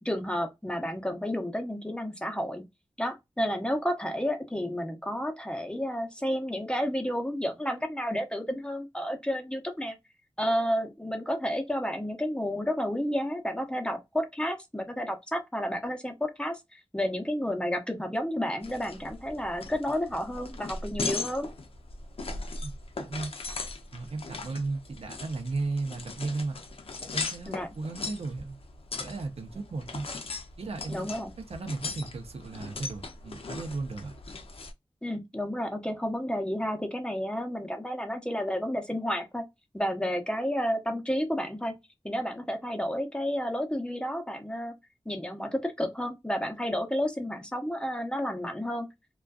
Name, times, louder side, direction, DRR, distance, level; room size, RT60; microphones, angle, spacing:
voice 1, 0.0-2.6 3.0-10.0 10.4-21.5 27.5-27.7 30.9-31.3 35.0-39.4 39.7-41.7 42.0-44.7 45.1-48.9, equal, 10° left, 0.7 m, -31 dB
sound 1, 18.6-34.7, left 3 dB, 70° left, 0.5 m, -39 dB
voice 2, 22.6-23.3 23.9-26.6 27.1-28.6 29.0-30.1 30.6-31.1 31.5-34.1, right 3 dB, 85° right, 0.6 m, -35 dB
2.5 x 2.2 x 2.2 m
wide cardioid pair, 55°, 10 cm